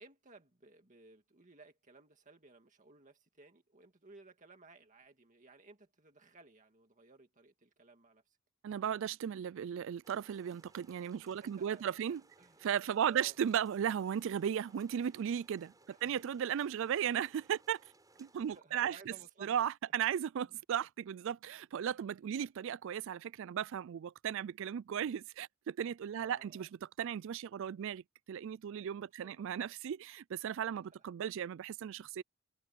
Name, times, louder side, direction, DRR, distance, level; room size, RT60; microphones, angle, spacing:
voice 1, 0.0-8.4 11.3-12.6 13.1-13.5 15.8-16.1 16.6-16.7 18.5-19.5 19.8-19.9 20.5-20.6 21.9-22.0 22.4-22.5 26.2-26.7 29.2-29.5 30.8-31.0, right 3 dB, 35° right, 2.1 m, -59 dB
voice 2, 8.6-12.2 12.6-17.8 18.2-19.1 19.4-26.7 27.0-28.0 28.3-32.2, right 9 dB, 60° right, 0.3 m, -36 dB
sound 1, 10.0-18.6, right 2 dB, 15° right, 7.1 m, -65 dB
head